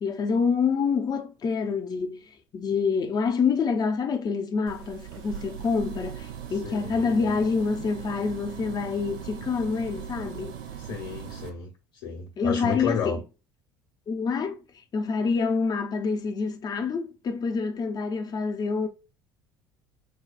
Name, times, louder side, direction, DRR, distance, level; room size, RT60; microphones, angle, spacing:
voice 1, 0.0-2.2 2.5-10.6 12.4-13.2 14.1-14.6 14.9-18.9, left 5 dB, 35° left, 0.7 m, -27 dB
sound 1, 4.7-11.5, right 9 dB, 65° right, 0.6 m, -39 dB
voice 2, 6.5-7.4 10.8-13.2, left 6 dB, 70° left, 1.2 m, -32 dB
5.4 x 2.3 x 2.5 m
figure-of-eight pair, 65°, 11 cm